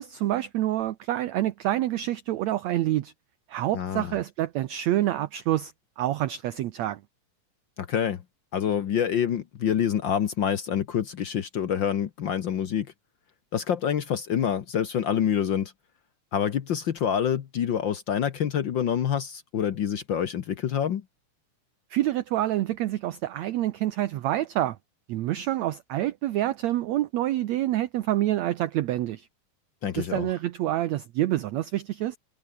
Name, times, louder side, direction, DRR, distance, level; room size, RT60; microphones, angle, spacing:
voice 1, 0.0-3.1 3.5-7.0 21.9-24.8 25.1-29.3 30.0-32.2, right 14 dB, 70° right, 1.9 m, -27 dB
voice 2, 3.7-4.1 7.8-8.2 8.5-12.9 13.5-15.7 16.3-21.0 29.8-30.3, left 8 dB, 75° left, 1.1 m, -27 dB
omnidirectional pair, 3.8 m